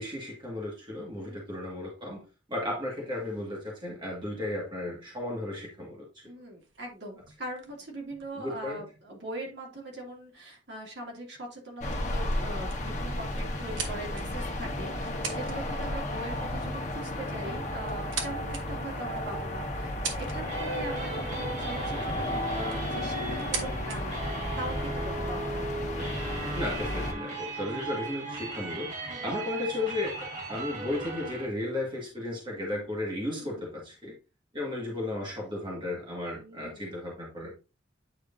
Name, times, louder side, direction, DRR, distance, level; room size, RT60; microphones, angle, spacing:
voice 1, 0.0-6.3 8.3-8.8 26.5-28.9 29.2-34.1 34.5-37.5, left 1 dB, 25° right, 1.9 m, -34 dB
voice 2, 6.3-25.7 29.1-29.3 33.4-33.7 36.4-36.9, right 1 dB, 60° right, 2.7 m, -41 dB
sound 1, 6.6-9.2 10.1-10.2 10.5-10.8 11.3-11.6 11.9-12.0 12.3-12.9 13.4-14.5 15.0-15.6 15.8-16.1 17.2-17.3 17.8-18.6 19.2-19.3 19.8-20.6 22.0-22.1 22.5-22.9 23.3-24.0, right 6 dB, 85° right, 1.4 m, -39 dB
sound 2, 11.8-27.1, left 1 dB, 40° left, 1.3 m, -33 dB
sound 3, 20.3-31.5, right 2 dB, 40° right, 3.0 m, -37 dB
9.2 x 4.7 x 2.7 m
head